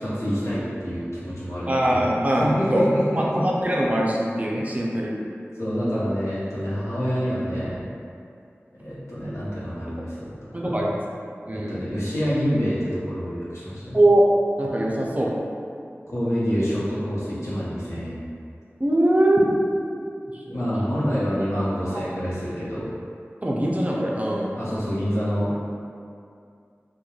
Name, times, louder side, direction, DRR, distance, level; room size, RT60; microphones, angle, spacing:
voice 1, 0.0-3.4 5.6-7.9 8.7-10.8 11.5-14.0 16.1-18.2 20.5-22.9 24.6-25.5, equal, 90° left, -10 dB, 0.7 m, -27 dB
voice 2, 1.7-2.9 3.2-5.2 10.5-11.0 11.5-11.9 13.9-14.2 14.6-15.3 18.8-19.9 20.5-21.0 23.4-24.6, right 1 dB, 30° right, -3 dB, 0.4 m, -22 dB
2.9 x 2.2 x 2.3 m, 2.4 s
wide cardioid pair, 50°, 5 cm